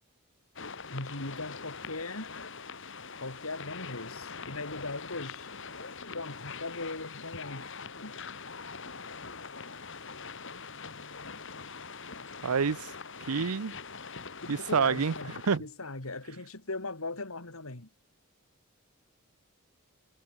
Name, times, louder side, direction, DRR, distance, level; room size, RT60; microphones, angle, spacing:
sound 1, 0.6-15.6, left 5 dB, 60° left, 3.3 m, -43 dB
voice 1, 0.9-2.4 3.2-5.5 6.1-8.1 14.4-17.9, left 2 dB, 75° left, 3.0 m, -39 dB
voice 2, 12.4-12.9 13.3-13.7 14.5-15.1 15.5-15.6, right 5 dB, 90° right, 0.6 m, -27 dB
head